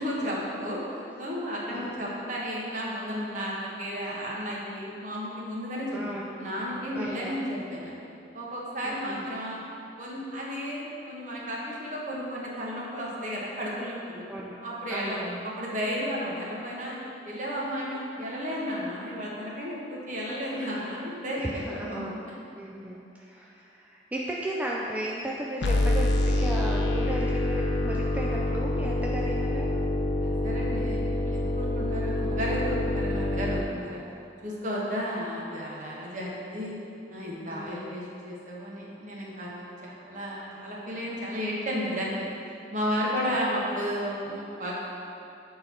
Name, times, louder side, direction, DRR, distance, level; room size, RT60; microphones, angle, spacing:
voice 1, 0.0-3.5 3.8-6.0 6.4-8.0 8.3-9.6 10.0-14.2 14.6-15.2 15.4-17.0 17.2-22.4 30.2-34.0 34.4-36.7 37.1-42.1 42.7-44.7, equal, 45° right, -4 dB, 1.3 m, -33 dB
voice 2, 5.9-6.4 6.9-7.5 8.8-9.3 14.2-14.6 14.9-15.4 21.3-22.2 22.6-29.8 34.7-35.0 37.5-37.8 42.9-43.3, right 1 dB, 10° right, -4 dB, 0.3 m, -36 dB
sound 1, 25.6-33.6, left 1 dB, 75° left, 0.6 m, -26 dB
7.7 x 3.9 x 4.4 m, 2.7 s
head